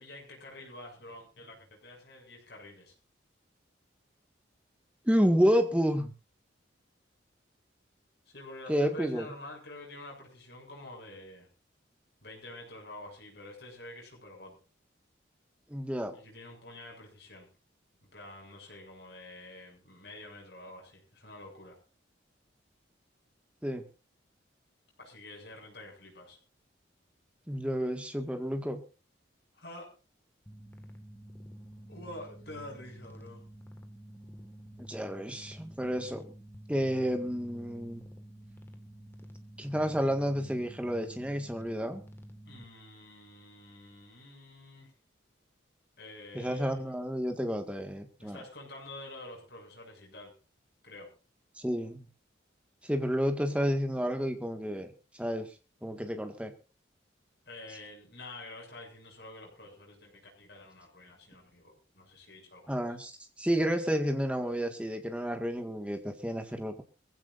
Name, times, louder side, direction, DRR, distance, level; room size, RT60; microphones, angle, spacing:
voice 1, 0.0-2.9 8.3-11.5 12.2-14.6 16.1-17.5 18.1-21.8 25.0-26.4 29.5-29.9 31.9-33.4 42.4-44.9 46.0-46.8 48.2-50.3 50.8-51.1 57.5-62.8, left 1 dB, 55° left, 0 dB, 7.2 m, -48 dB
voice 2, 5.1-6.1 8.7-9.3 15.7-16.1 23.6-23.8 27.5-28.8 34.8-36.3 36.7-38.0 39.6-42.0 46.3-48.4 51.6-52.0 52.8-54.9 55.2-55.5 55.8-56.5 62.7-63.1 63.4-66.8, equal, 5° right, 5 dB, 1.8 m, -30 dB
sound 1, 30.5-42.6, equal, 10° left, 1.8 m, -49 dB
23.0 x 16.0 x 2.6 m, 0.32 s
head